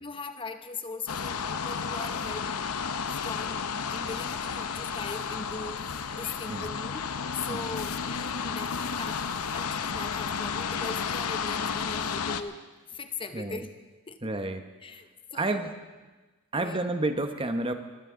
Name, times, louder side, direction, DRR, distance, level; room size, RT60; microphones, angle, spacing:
voice 1, 0.0-2.6 3.0-9.2 9.5-12.6 12.9-13.7 14.1-14.2 14.8-15.7 16.5-16.8, left 4 dB, 25° left, 8 dB, 0.8 m, -40 dB
sound 1, 1.1-12.4, left 6 dB, 80° left, 0.7 m, -32 dB
voice 2, 13.3-13.6 14.2-14.7 15.3-15.7 16.5-17.7, right 2 dB, 25° right, 7 dB, 0.9 m, -30 dB
22.5 x 15.0 x 3.7 m, 1.2 s
head